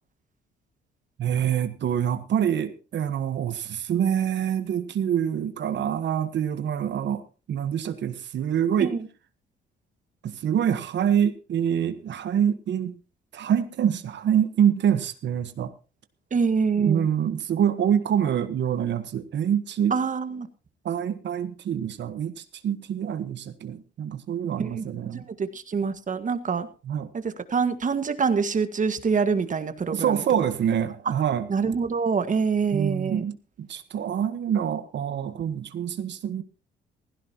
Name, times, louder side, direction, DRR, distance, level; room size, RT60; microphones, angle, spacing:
voice 1, 1.2-7.2 7.5-9.0 10.2-13.0 13.3-15.7 16.8-20.0 20.8-25.2 26.9-27.1 29.9-31.5 32.7-36.4, right 9 dB, 65° right, 11 dB, 1.3 m, -26 dB
voice 2, 16.3-17.1 19.9-20.5 24.6-24.8 25.1-26.7 27.1-30.2 31.5-33.2, right 5 dB, 40° right, 10 dB, 1.7 m, -25 dB
16.0 x 16.0 x 2.9 m, 0.33 s
cardioid pair, 90°, 20 cm